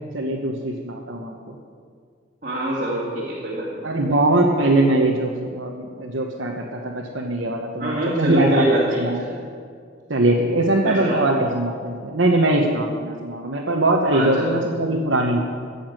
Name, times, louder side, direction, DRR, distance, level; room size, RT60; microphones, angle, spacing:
voice 1, 0.1-1.5 3.8-9.2 10.1-15.4, right 2 dB, 65° right, -2 dB, 1.2 m, -21 dB
voice 2, 2.4-3.8 7.8-9.3 10.8-11.2 14.1-14.6, right 1 dB, 45° right, -7 dB, 2.3 m, -25 dB
15.0 x 7.2 x 9.1 m, 2.2 s
head